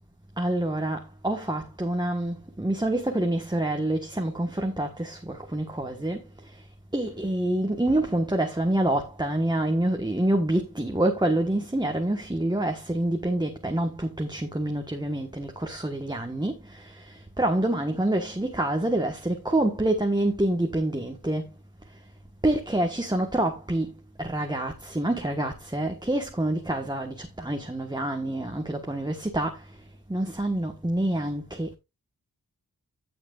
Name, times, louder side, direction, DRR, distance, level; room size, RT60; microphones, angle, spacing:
voice 1, 0.4-6.6 6.9-21.5 22.4-29.7 30.1-31.7, right 1 dB, 10° right, 1.4 m, -27 dB
15.5 x 6.1 x 2.4 m
wide cardioid pair, 60°, 37 cm